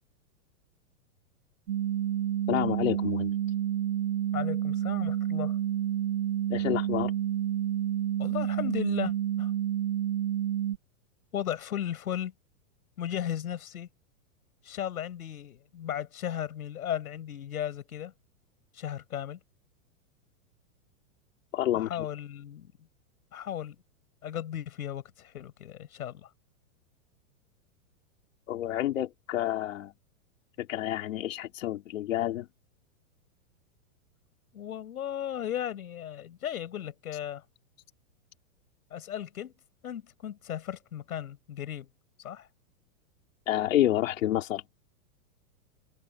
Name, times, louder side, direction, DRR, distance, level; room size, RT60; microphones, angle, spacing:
sound 1, 1.7-10.8, right 11 dB, 55° right, 3.4 m, -29 dB
voice 1, 2.5-3.3 6.5-7.1 21.5-22.1 28.5-29.9 30.6-32.5 43.5-44.6, left 13 dB, 65° left, 3.9 m, -29 dB
voice 2, 4.3-5.6 8.2-9.5 11.3-12.3 13.0-13.9 14.6-18.1 18.7-19.4 21.7-22.7 23.3-23.8 24.2-26.3 34.5-37.4 38.9-39.5 39.8-41.9 42.2-42.5, left 10 dB, 90° left, 7.1 m, -35 dB
supercardioid pair, 170°, 43 cm